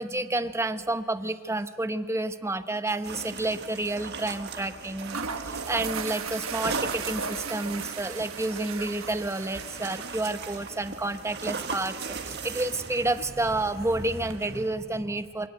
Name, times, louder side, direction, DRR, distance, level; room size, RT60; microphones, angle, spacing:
voice 1, 0.0-15.5, right 2 dB, 15° right, 11 dB, 0.8 m, -30 dB
sound 1, 2.9-3.2 3.4-3.5 4.6-4.7 5.0-14.4, right 5 dB, 70° right, 1.4 m, -38 dB
sound 2, 3.0-14.7, right 5 dB, 55° right, 1.6 m, -39 dB
25.0 x 18.5 x 9.2 m, 2.3 s
head